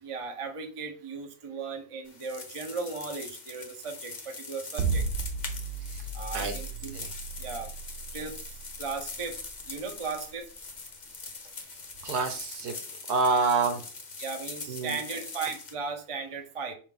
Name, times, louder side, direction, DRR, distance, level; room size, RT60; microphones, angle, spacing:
voice 1, 0.0-5.0 6.1-7.0 7.4-7.7 8.1-8.4 8.8-9.4 9.7-10.5 14.2-16.7, right 4 dB, 30° right, 4 dB, 0.6 m, -36 dB
sound 1, 2.1-15.7, left 4 dB, 40° left, 0.6 m, -42 dB
sound 2, 4.8-11.0, right 4 dB, 80° right, 1.3 m, -34 dB
voice 2, 12.0-12.7 13.1-13.8 14.7-15.0, right 4 dB, 65° right, 7 dB, 1.2 m, -27 dB
5.6 x 4.6 x 3.8 m, 0.37 s
omnidirectional pair, 2.0 m